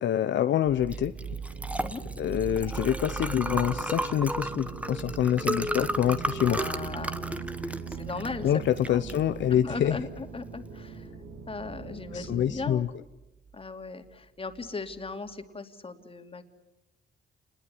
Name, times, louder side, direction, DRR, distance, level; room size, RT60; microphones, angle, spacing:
voice 1, 0.0-1.1 2.2-6.6 8.4-10.0 12.1-12.9, left 10 dB, 70° left, 10 dB, 0.9 m, -26 dB
sound 1, 0.6-15.3, right 6 dB, 85° right, 4.6 m, -44 dB
Liquid, 0.8-11.0, right 1 dB, 5° right, 1.2 m, -34 dB
sound 2, 1.0-12.7, right 6 dB, 70° right, 4.0 m, -42 dB
voice 2, 6.5-8.6 8.9-9.0 9.5-11.1 11.5-12.8 13.5-16.4, left 4 dB, 30° left, 7 dB, 2.8 m, -38 dB
28.0 x 21.5 x 9.5 m, 0.95 s
cardioid pair, 90°, 20 cm